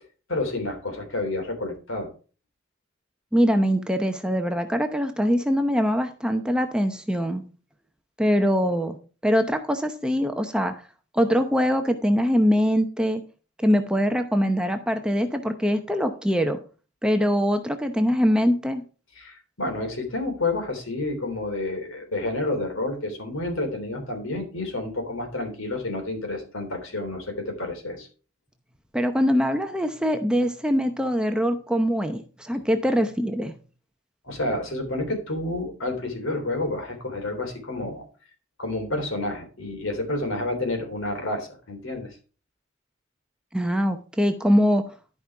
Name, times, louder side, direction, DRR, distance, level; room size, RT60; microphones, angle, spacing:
voice 1, 0.3-2.1 19.2-28.1 34.2-38.0 38.6-42.2, left 2 dB, 75° left, 4 dB, 3.3 m, -29 dB
voice 2, 3.3-7.4 8.2-9.0 9.2-10.7 11.1-13.2 13.6-16.6 17.0-18.8 28.9-33.5 43.5-44.8, equal, 5° right, 6 dB, 0.7 m, -23 dB
12.5 x 5.3 x 4.7 m, 0.37 s
head